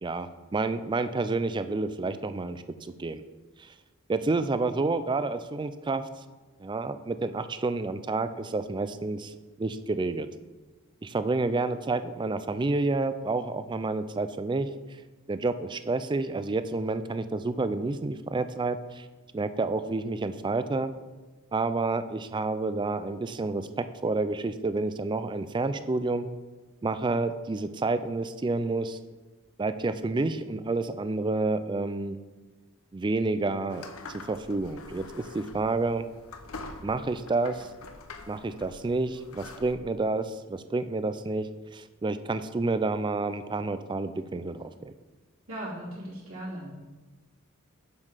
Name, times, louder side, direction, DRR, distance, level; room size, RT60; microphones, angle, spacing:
voice 1, 0.0-3.2 3.6-3.7 4.1-6.1 6.6-9.3 9.6-10.3 11.0-14.7 15.3-19.1 19.3-20.9 21.5-26.3 26.8-29.0 29.6-32.2 32.9-36.1 36.8-37.7 38.3-44.9, right 3 dB, 20° right, 12 dB, 0.3 m, -29 dB
sound 1, 33.7-39.7, left 3 dB, 80° left, 0.7 m, -45 dB
voice 2, 45.5-46.7, right 1 dB, 75° right, -6 dB, 2.8 m, -38 dB
7.2 x 6.4 x 5.0 m, 1.2 s
head